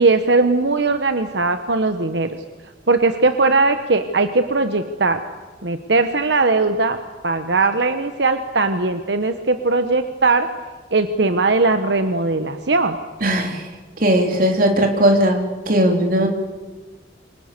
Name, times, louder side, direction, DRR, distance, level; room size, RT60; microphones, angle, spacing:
voice 1, 0.0-2.3 2.9-5.2 5.6-7.0 7.2-10.5 10.9-13.0, right 3 dB, 85° right, 8 dB, 1.3 m, -19 dB
voice 2, 13.2-13.6 14.0-16.3, right 1 dB, 55° right, 3 dB, 3.9 m, -18 dB
28.5 x 24.5 x 6.9 m, 1.3 s
head